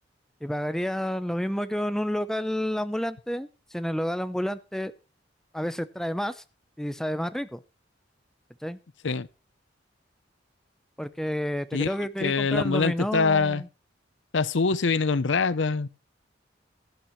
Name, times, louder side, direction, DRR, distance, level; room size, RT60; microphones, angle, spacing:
voice 1, 0.4-4.9 5.5-6.4 6.8-7.6 8.6-8.8 11.0-13.7, equal, 5° left, 0.6 m, -30 dB
voice 2, 12.2-13.6 14.3-15.9, left 4 dB, 85° left, 0.7 m, -24 dB
16.5 x 11.5 x 3.1 m
head